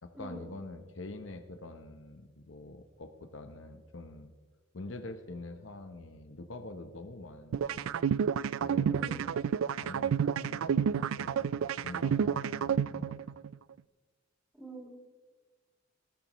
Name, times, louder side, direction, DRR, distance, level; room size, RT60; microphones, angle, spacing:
voice 1, 0.0-4.3 4.7-7.9 8.6-9.2 9.8-13.2, left 2 dB, 65° left, 6 dB, 0.9 m, -45 dB
sound 1, 7.5-13.5, right 7 dB, 80° right, 0.3 m, -30 dB
voice 2, 14.5-14.9, right 2 dB, 5° right, -3 dB, 4.2 m, -44 dB
20.0 x 13.0 x 3.1 m, 1.3 s
head